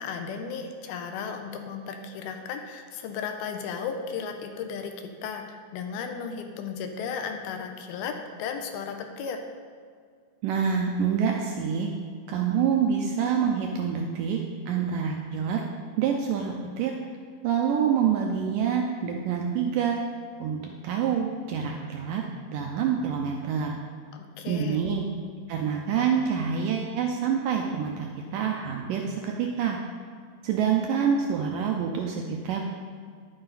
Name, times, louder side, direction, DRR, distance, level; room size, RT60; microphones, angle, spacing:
voice 1, 0.0-5.4 5.7-8.1 8.4-9.4 24.1-24.9, left 6 dB, 80° left, 5 dB, 2.6 m, -35 dB
voice 2, 10.4-11.9 12.3-14.4 14.7-15.6 16.0-16.9 17.4-20.0 20.4-22.2 22.5-23.8 24.5-25.1 25.5-28.1 28.3-29.8 30.4-32.6, right 7 dB, 80° right, 1 dB, 2.0 m, -26 dB
11.0 x 9.7 x 4.0 m, 2.1 s
omnidirectional pair, 4.5 m